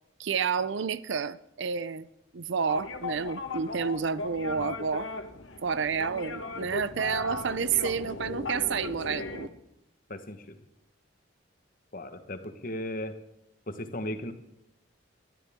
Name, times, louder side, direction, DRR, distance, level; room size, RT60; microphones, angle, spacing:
voice 1, 0.2-2.1 2.3-5.1 5.6-9.5, right 6 dB, 70° right, 0.5 m, -30 dB
sound 1, 2.7-9.5, left 3 dB, 80° left, 1.3 m, -37 dB
voice 2, 10.1-10.6 11.9-13.2 13.7-14.3, left 1 dB, 45° left, 1.3 m, -36 dB
19.5 x 12.5 x 3.6 m
head